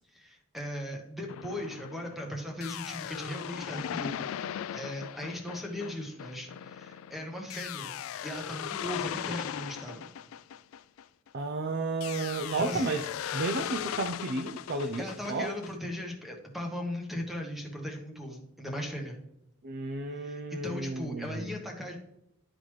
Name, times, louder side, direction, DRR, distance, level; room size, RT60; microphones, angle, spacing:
voice 1, 0.1-7.9 8.2-10.0 12.4-12.9 15.0-19.2 20.1-22.0, left 1 dB, ahead, 1 dB, 1.2 m, -38 dB
sound 1, 1.3-11.4 12.0-15.7, left 10 dB, 70° left, 0.3 m, -38 dB
voice 2, 11.3-13.1 13.3-15.5 19.6-21.5, right 3 dB, 50° right, 6 dB, 0.5 m, -32 dB
11.5 x 4.0 x 3.1 m, 0.80 s
head